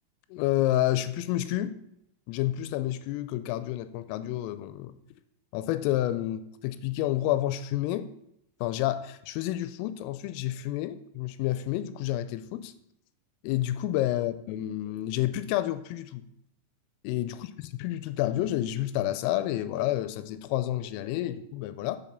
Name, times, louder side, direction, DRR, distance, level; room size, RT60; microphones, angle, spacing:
voice 1, 0.3-1.8 2.3-5.0 5.5-8.1 8.6-12.7 13.4-16.3 17.0-22.0, left 14 dB, 90° left, 12 dB, 3.2 m, -29 dB
7.0 x 5.3 x 6.6 m, 0.77 s
omnidirectional pair, 5.8 m